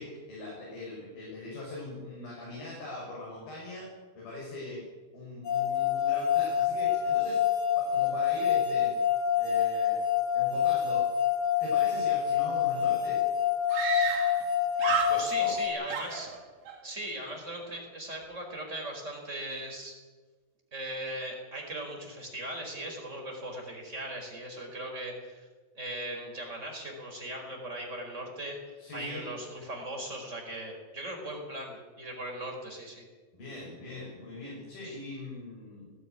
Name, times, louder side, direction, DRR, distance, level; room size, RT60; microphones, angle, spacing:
voice 1, 0.0-3.9 4.2-4.8 5.1-7.4 7.8-9.0 9.4-10.0 10.3-11.1 11.6-13.2 15.1-15.5 28.8-29.3 33.3-35.9, left 2 dB, 80° left, -4 dB, 8.7 m, -41 dB
sound 1, 5.4-15.7, left 9 dB, 45° left, 4.3 m, -27 dB
Screaming, 12.6-12.7 12.9-13.0 13.7-14.5 14.8-15.6 15.9-16.8, right 6 dB, 70° right, 4.5 m, -32 dB
voice 2, 15.1-16.3 16.8-19.9 20.7-25.5 25.7-33.1 34.8-35.0, right 1 dB, 20° right, 2 dB, 4.9 m, -39 dB
18.5 x 15.5 x 9.8 m, 1.4 s
omnidirectional pair, 4.2 m